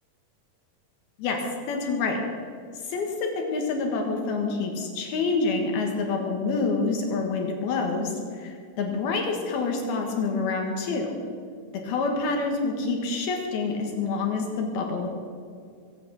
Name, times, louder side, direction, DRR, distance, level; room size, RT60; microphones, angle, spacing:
voice 1, 1.7-2.2 2.8-3.1 3.4-11.1 11.8-15.1, left 4 dB, 75° left, 2 dB, 3.4 m, -27 dB
22.0 x 8.7 x 6.3 m, 2.3 s
omnidirectional pair, 4.6 m